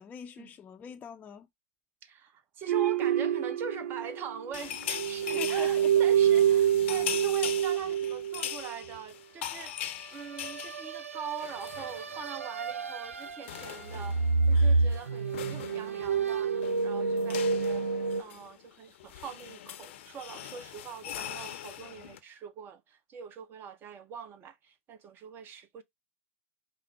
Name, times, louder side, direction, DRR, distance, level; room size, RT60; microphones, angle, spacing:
voice 1, 0.0-1.5 5.3-5.9, left 8 dB, 20° left, 0.5 m, -43 dB
voice 2, 2.0-17.8 18.2-25.8, right 7 dB, 30° right, 0.8 m, -43 dB
sound 1, 2.7-4.6 4.9-8.7 10.3-13.6 13.9-18.2, right 6 dB, 85° right, 0.4 m, -28 dB
sound 2, 4.5-12.4 12.7-12.9 13.1-22.2, left 11 dB, 65° left, 0.7 m, -41 dB
4.8 x 2.0 x 4.7 m
hypercardioid pair, 105°, 7 cm